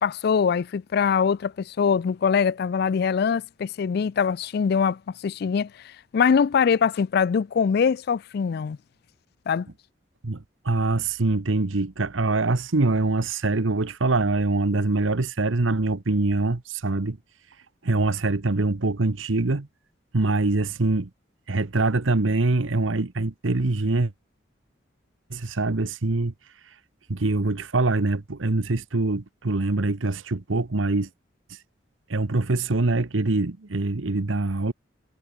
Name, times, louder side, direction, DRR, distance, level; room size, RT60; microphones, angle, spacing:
voice 1, 0.0-5.7 6.1-8.8 9.5-9.7, left 6 dB, 55° left, 0.3 m, -23 dB
voice 2, 10.2-17.2 17.8-19.7 20.1-21.1 21.5-24.1 25.3-26.3 27.1-31.1 32.1-34.7, right 2 dB, 90° right, 1.1 m, -24 dB
head